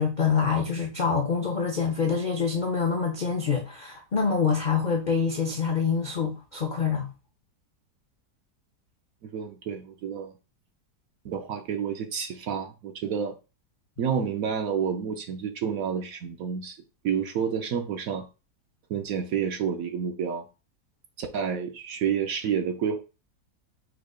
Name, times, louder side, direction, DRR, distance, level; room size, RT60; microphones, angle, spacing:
voice 1, 0.0-7.1, left 6 dB, 65° left, 0.4 m, -26 dB
voice 2, 9.2-10.3 11.2-13.3 14.0-16.8 17.0-18.3 18.9-20.4 21.2-23.0, right 7 dB, 65° right, 0.9 m, -29 dB
4.9 x 4.6 x 2.3 m
omnidirectional pair, 1.8 m